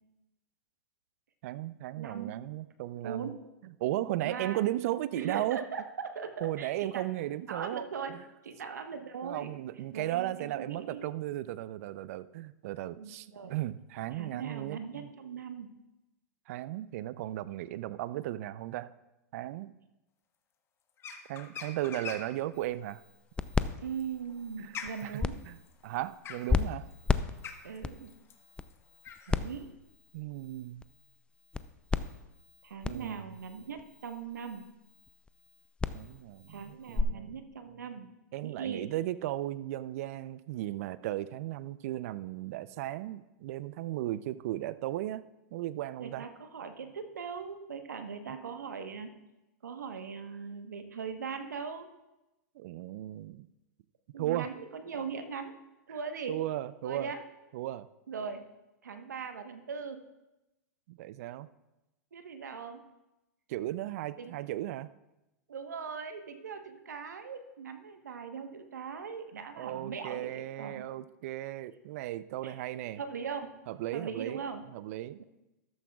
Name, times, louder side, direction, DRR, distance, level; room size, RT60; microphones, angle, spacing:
voice 1, 1.4-3.3 3.6-5.6 6.4-7.8 8.1-8.2 9.2-15.1 16.5-18.9 19.3-19.7 21.3-23.0 24.6-25.6 25.8-26.9 30.1-30.8 32.9-33.3 35.9-37.4 38.3-45.2 45.5-46.3 48.3-48.4 52.6-53.5 54.2-54.5 55.9-56.0 56.3-57.1 57.5-57.9 60.9-61.5 63.5-64.9 69.6-73.0 73.7-74.4 74.7-75.2, right 14 dB, 60° right, 16 dB, 0.5 m, -36 dB
voice 2, 2.0-2.3 3.0-3.4 4.2-4.7 5.1-7.0 7.5-8.2 8.4-9.5 9.9-11.0 12.9-13.5 14.1-15.7 23.8-25.4 27.6-28.1 29.3-29.7 32.6-34.6 36.5-38.1 38.4-38.9 46.0-49.1 49.6-51.9 54.1-55.6 55.9-56.3 56.8-57.2 58.1-58.4 58.8-60.1 62.1-62.8 64.2-64.4 65.5-70.8 72.4-72.6 73.0-73.6 73.9-74.7, right 6 dB, 85° right, 7 dB, 1.2 m, -40 dB
sound 1, 21.0-22.4 23.8-29.4, left 7 dB, 30° left, 1.3 m, -44 dB
sound 2, 22.5-37.0, left 4 dB, 10° left, 0.4 m, -36 dB
13.5 x 12.5 x 2.4 m, 0.98 s
hypercardioid pair, 110°, 9 cm